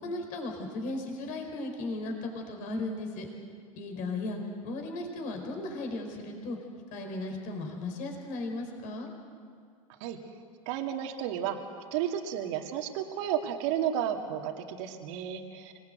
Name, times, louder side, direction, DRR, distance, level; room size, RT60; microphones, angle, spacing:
voice 1, 0.0-3.3 3.7-6.6 6.9-9.1 15.1-15.6, left 2 dB, 50° left, 3 dB, 4.6 m, -36 dB
voice 2, 10.7-11.6 11.9-15.7, right 10 dB, 60° right, 3 dB, 2.2 m, -32 dB
26.0 x 19.5 x 8.1 m, 2.2 s
hypercardioid pair, 90°, 18 cm